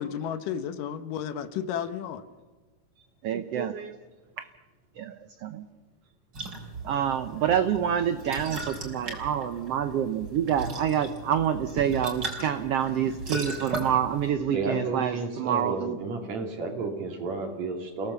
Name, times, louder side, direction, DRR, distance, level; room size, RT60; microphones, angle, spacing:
voice 1, 0.0-2.2, left 8 dB, 90° left, 11 dB, 2.8 m, -32 dB
voice 2, 3.2-4.0 4.4-4.5 5.0-5.1 5.4-5.6 6.9-16.0, right 9 dB, 75° right, 10 dB, 1.4 m, -27 dB
sound 1, 6.3-14.3, right 2 dB, 35° right, 4.0 m, -37 dB
voice 3, 14.5-18.1, right 3 dB, 60° right, 3 dB, 4.0 m, -32 dB
29.0 x 17.5 x 7.0 m, 1.3 s
omnidirectional pair, 3.7 m